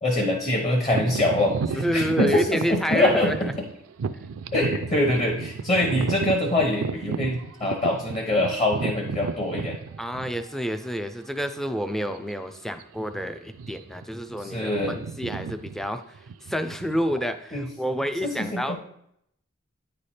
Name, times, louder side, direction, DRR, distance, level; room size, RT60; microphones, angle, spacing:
voice 1, 0.0-3.5 4.5-9.8 14.4-15.0 17.5-17.6 18.2-18.8, left 1 dB, 30° left, 0 dB, 0.9 m, -24 dB
sound 1, 0.9-10.7 11.3-11.4 12.1-12.3 12.6-12.8 13.5-14.0 14.3-17.7, right 5 dB, 85° right, 0.4 m, -33 dB
voice 2, 1.7-3.5 10.0-18.8, equal, ahead, 9 dB, 0.3 m, -29 dB
9.3 x 3.3 x 4.2 m, 0.73 s
head